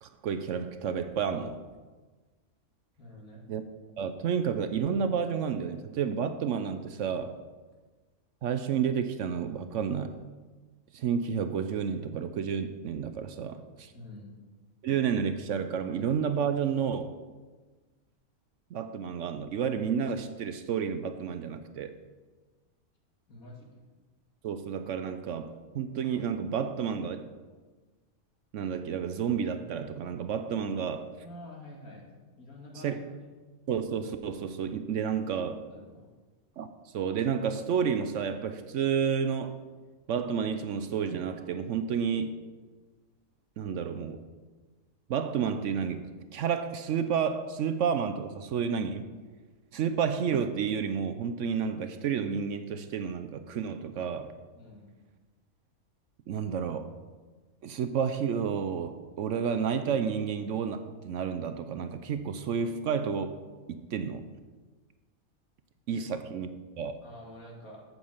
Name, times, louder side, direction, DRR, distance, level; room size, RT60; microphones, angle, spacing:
voice 1, 0.0-1.6 3.5-3.6 4.0-7.3 8.4-10.2 10.9-13.9 14.8-17.1 18.7-21.9 24.4-27.2 28.5-31.1 32.8-33.0 33.7-35.7 36.6-39.6 40.1-42.4 43.6-44.2 45.1-49.1 49.7-54.3 56.3-56.9 57.6-63.3 63.7-64.3 65.9-66.5 66.8-67.0, right 7 dB, 65° right, 9 dB, 0.9 m, -30 dB
voice 2, 3.0-3.5 13.9-14.3 23.3-23.7 31.2-32.0 32.4-33.0 35.6-36.1 54.5-54.9 65.9-66.2 67.0-67.8, left 1 dB, 75° left, -1 dB, 2.5 m, -47 dB
8.0 x 6.3 x 7.2 m, 1.3 s
omnidirectional pair, 1.5 m